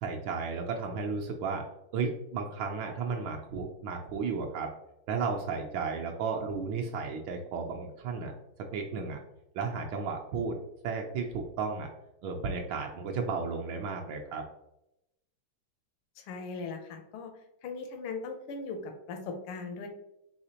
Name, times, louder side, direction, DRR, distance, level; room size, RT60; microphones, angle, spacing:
voice 1, 0.0-1.6 1.9-4.7 5.1-8.3 8.7-9.2 9.5-10.6 10.8-11.9 12.2-14.4, right 5 dB, 75° right, 1 dB, 1.2 m, -33 dB
voice 2, 16.2-17.3 17.6-19.9, left 4 dB, 80° left, 5 dB, 1.6 m, -39 dB
4.9 x 3.3 x 2.8 m, 0.85 s
omnidirectional pair, 2.4 m